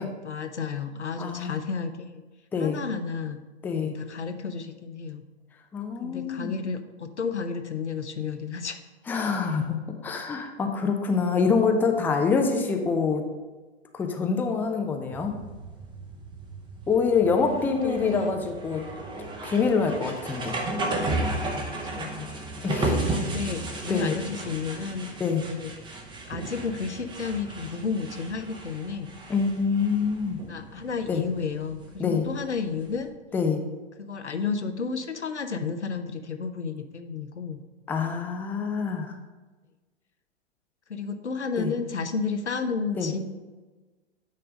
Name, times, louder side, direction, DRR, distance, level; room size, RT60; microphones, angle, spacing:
voice 1, 0.2-2.2 2.6-3.4 3.7-5.2 6.0-8.8 17.4-18.3 21.9-22.3 23.0-25.7 26.3-29.1 30.5-33.1 34.0-37.6 40.9-43.2, left 5 dB, 85° left, 8 dB, 0.8 m, -32 dB
voice 2, 1.2-1.6 2.5-2.8 3.6-3.9 5.7-6.5 9.1-13.2 13.9-15.3 16.9-18.8 19.4-20.6 22.6-23.1 23.9-24.1 25.2-25.4 29.3-30.4 31.1-31.2 32.0-32.3 33.3-33.6 37.9-39.2 41.6-41.7 43.0-43.1, left 5 dB, 5° left, 4 dB, 0.4 m, -25 dB
sound 1, 15.1-33.1, right 2 dB, 15° right, 0.8 m, -34 dB
9.3 x 3.3 x 5.2 m, 1.3 s
figure-of-eight pair, 105°, 33 cm